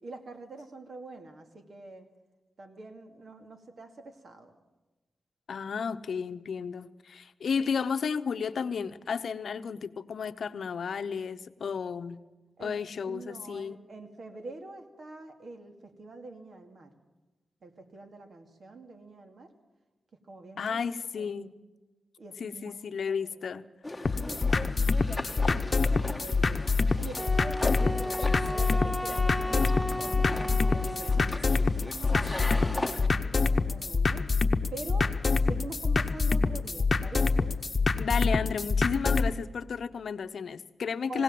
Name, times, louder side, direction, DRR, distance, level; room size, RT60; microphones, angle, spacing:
voice 1, 0.0-2.1 2.6-4.5 12.6-16.9 17.6-19.5 20.3-20.8 21.2-21.4 22.2-23.5 24.1-25.0 25.8-26.6 26.9-28.0 28.5-34.3 34.7-35.1 35.4-37.5 41.0-41.2, right 2 dB, 60° right, 5 dB, 2.3 m, -45 dB
voice 2, 5.5-12.2 12.6-13.8 20.6-21.5 22.4-24.1 38.0-41.2, left 6 dB, 70° left, 11 dB, 0.8 m, -33 dB
sound 1, 23.8-33.1, left 2 dB, 10° left, 1.3 m, -38 dB
sound 2, 24.0-39.3, left 4 dB, 40° left, 1.0 m, -26 dB
Wind instrument woodwind instrument, 27.2-31.4, left 1 dB, 5° right, 0.7 m, -35 dB
20.5 x 17.0 x 7.7 m, 1.1 s
wide cardioid pair, 95°, 0 cm